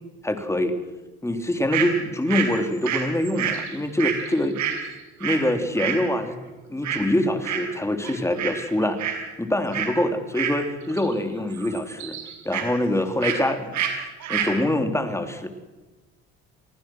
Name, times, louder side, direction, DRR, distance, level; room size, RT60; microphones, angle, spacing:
voice 1, 0.2-0.7 1.2-4.6 5.2-6.4 6.7-9.0 9.4-12.2 12.5-13.8 14.3-15.5, left 1 dB, 10° left, 6 dB, 3.6 m, -24 dB
sound 1, 1.7-1.9 2.3-5.5 5.8-6.0 6.8-7.1 7.4-7.8 8.0-8.6 8.8-9.2 9.7-9.9 10.3-11.1 11.4-12.7 13.2-13.4 13.7-13.9 14.2-14.5, right 8 dB, 65° right, 6.0 m, -28 dB
28.5 x 19.0 x 6.3 m, 1.2 s
cardioid pair, 85°, 31 cm